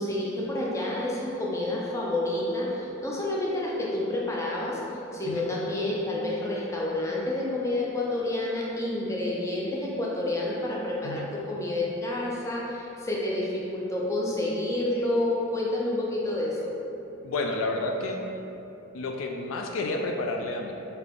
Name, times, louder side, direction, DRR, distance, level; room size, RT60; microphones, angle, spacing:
voice 1, 0.0-4.8 5.1-16.7, left 1 dB, 15° left, -4 dB, 0.5 m, -29 dB
voice 2, 17.2-18.2 18.9-20.7, left 2 dB, 75° left, 2 dB, 0.3 m, -30 dB
3.7 x 2.8 x 3.5 m, 2.9 s
head